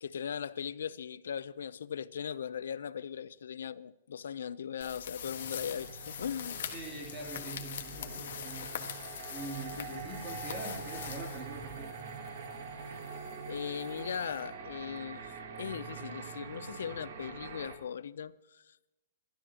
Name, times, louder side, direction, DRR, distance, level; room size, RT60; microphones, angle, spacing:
voice 1, 0.0-6.7 7.9-8.3 9.8-10.0 12.9-13.0 13.5-18.9, left 8 dB, 90° left, 0.5 m, -39 dB
sound 1, 4.8-12.0, left 8 dB, 65° left, 1.5 m, -42 dB
sound 2, 5.2-6.0 6.4-7.2 7.7-14.6, left 7 dB, 20° left, 3.1 m, -63 dB
sound 3, 5.2-17.8, right 5 dB, 55° right, 2.2 m, -45 dB
voice 2, 6.7-12.2, right 3 dB, 20° right, 2.9 m, -44 dB
29.0 x 12.5 x 2.9 m
hypercardioid pair, 170°, 0 cm